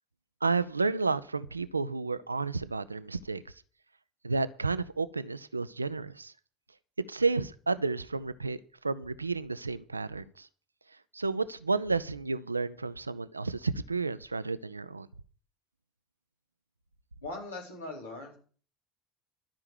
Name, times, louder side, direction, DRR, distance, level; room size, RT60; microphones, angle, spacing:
voice 1, 0.4-3.4 4.2-6.3 7.1-10.5 11.1-15.1, right 4 dB, 85° right, 0.5 m, -31 dB
voice 2, 17.2-18.4, left 2 dB, 80° left, 4.2 m, -40 dB
13.0 x 5.8 x 9.1 m
figure-of-eight pair, 60°, 0 cm